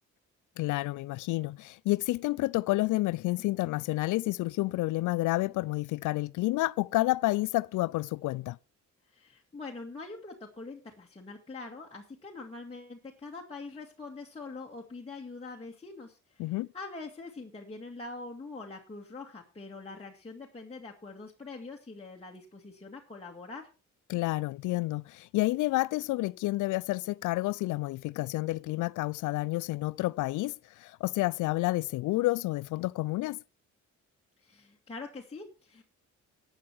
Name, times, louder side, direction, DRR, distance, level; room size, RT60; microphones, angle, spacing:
voice 1, 0.6-8.6 16.4-16.7 24.1-33.4, left 19 dB, 85° left, 0.5 m, -30 dB
voice 2, 9.0-23.7 34.4-35.8, left 3 dB, 20° left, 2.0 m, -44 dB
12.5 x 9.1 x 4.7 m
cardioid pair, 90°, 30 cm